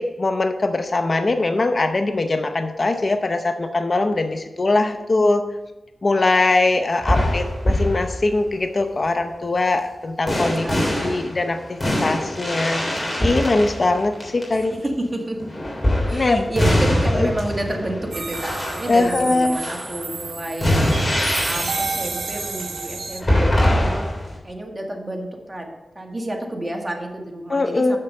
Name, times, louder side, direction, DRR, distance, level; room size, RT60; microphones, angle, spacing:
voice 1, 0.0-5.4 6.0-10.7 11.0-14.7 16.1-16.5 17.1-17.3 18.9-19.6 27.5-28.0, left 2 dB, 50° left, 7 dB, 0.7 m, -21 dB
sound 1, 7.0-8.5 10.3-14.6 15.4-24.4, left 1 dB, 30° left, 3.2 m, -23 dB
voice 2, 10.3-11.2 14.5-15.5 16.0-20.9 21.4-24.1 24.4-28.0, right 1 dB, 25° right, 2 dB, 1.7 m, -30 dB
sound 2, 18.1-23.2, right 4 dB, 85° right, 0.8 m, -31 dB
7.1 x 6.7 x 5.3 m, 1.1 s
cardioid pair, 60°, 0 cm